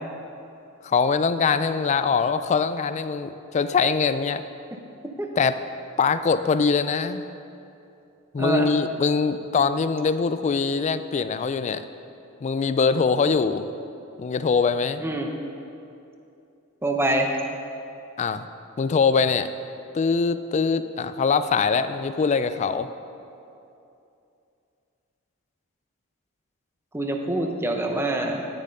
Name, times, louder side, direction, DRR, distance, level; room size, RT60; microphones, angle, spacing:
voice 1, 0.8-4.4 5.4-5.6 6.0-7.2 8.3-11.8 12.4-13.7 14.2-15.0 18.2-18.5 18.8-19.5 19.9-22.9, left 5 dB, 35° left, 12 dB, 0.3 m, -23 dB
voice 2, 8.4-8.7 15.0-15.3 16.8-17.3 26.9-28.5, right 2 dB, 10° right, 2 dB, 0.7 m, -25 dB
9.6 x 7.3 x 5.4 m, 2.7 s
head